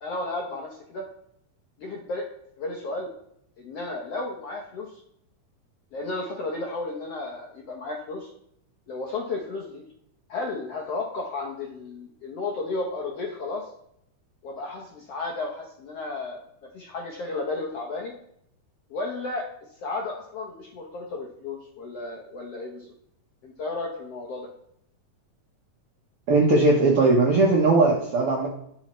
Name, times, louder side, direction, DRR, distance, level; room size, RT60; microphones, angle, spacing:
voice 1, 0.0-1.0 1.8-2.2 2.6-3.1 3.6-5.0 5.9-8.3 8.9-9.8 10.3-13.7 14.4-16.4 16.7-18.1 18.9-19.4 19.8-22.9 23.4-24.5, left 3 dB, 70° left, 0 dB, 1.5 m, -33 dB
voice 2, 26.3-28.5, right 3 dB, 70° right, -2 dB, 1.4 m, -19 dB
12.0 x 5.6 x 3.1 m, 0.73 s
omnidirectional pair, 4.1 m